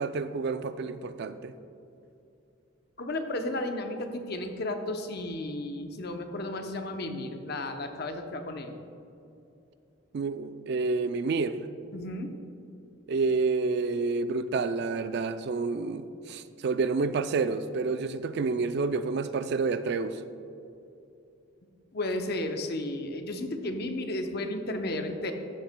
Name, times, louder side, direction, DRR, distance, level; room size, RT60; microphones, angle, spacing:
voice 1, 0.0-1.5 10.1-11.6 13.1-20.2, right 4 dB, 55° right, 12 dB, 0.3 m, -29 dB
voice 2, 3.0-8.7 11.9-12.3 21.9-25.3, left 1 dB, 50° left, 5 dB, 0.7 m, -33 dB
12.5 x 9.1 x 2.2 m, 2.7 s
head